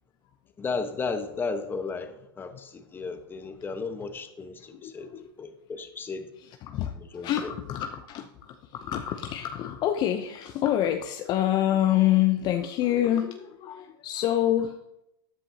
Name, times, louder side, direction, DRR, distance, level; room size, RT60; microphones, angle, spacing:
voice 1, 0.6-6.3 6.9-7.5, left 4 dB, 15° left, 1.1 m, -34 dB
voice 2, 4.7-5.3 6.6-14.8, left 12 dB, 35° left, 0.7 m, -27 dB
13.5 x 9.8 x 2.9 m
hypercardioid pair, 115°, 12 cm